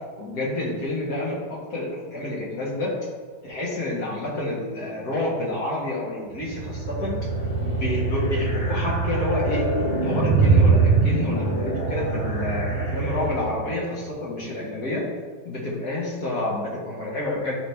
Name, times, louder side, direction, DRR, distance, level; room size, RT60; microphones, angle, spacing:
voice 1, 0.2-2.9 3.4-7.2 7.6-9.7 10.0-15.0 15.4-17.6, left 2 dB, 60° left, -5 dB, 2.1 m, -29 dB
sound 1, 6.4-13.8, right 4 dB, 20° left, 1.5 m, -23 dB
10.5 x 4.0 x 3.4 m, 1.5 s
omnidirectional pair, 1.9 m